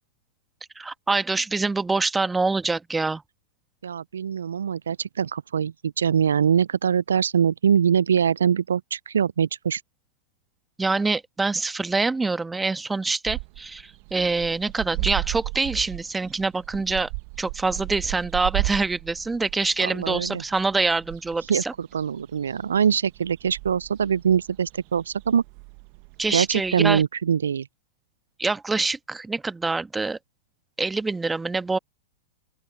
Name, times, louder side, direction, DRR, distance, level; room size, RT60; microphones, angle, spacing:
voice 1, 0.8-3.2 10.8-17.1 17.4-21.7 26.2-27.0 28.4-30.2 30.8-31.8, right 3 dB, 10° right, 1.3 m, -25 dB
voice 2, 3.8-9.8 19.8-20.4 21.5-25.4 26.3-27.7, right 7 dB, 75° right, 0.4 m, -23 dB
sound 1, 13.3-27.0, right 32 dB, 50° right, 0.9 m, -35 dB
open air
figure-of-eight pair, 95°, 0 cm